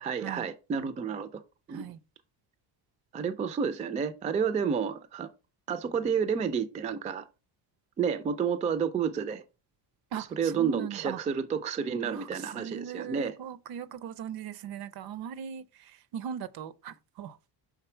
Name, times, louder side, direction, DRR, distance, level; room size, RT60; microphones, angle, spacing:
voice 1, 0.0-1.4 1.7-1.9 3.1-5.3 5.7-7.2 8.0-9.4 10.4-13.3, right 6 dB, 20° right, 0.3 m, -30 dB
voice 2, 10.1-11.2 12.0-17.4, right 8 dB, 65° right, 0.6 m, -39 dB
5.9 x 3.7 x 4.4 m
cardioid pair, 155°, 40 cm